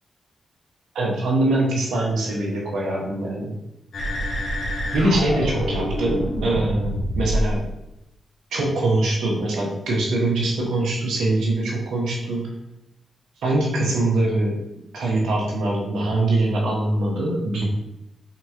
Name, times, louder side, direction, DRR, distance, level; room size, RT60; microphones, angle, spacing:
voice 1, 0.9-3.5 4.9-7.6 8.5-12.5 13.4-14.6 14.9-17.6, right 2 dB, 90° right, -2 dB, 1.0 m, -23 dB
sound 1, 3.9-7.6, equal, 65° left, 1.1 m, -26 dB
3.8 x 3.0 x 3.6 m, 0.86 s
cardioid pair, 60°, 0 cm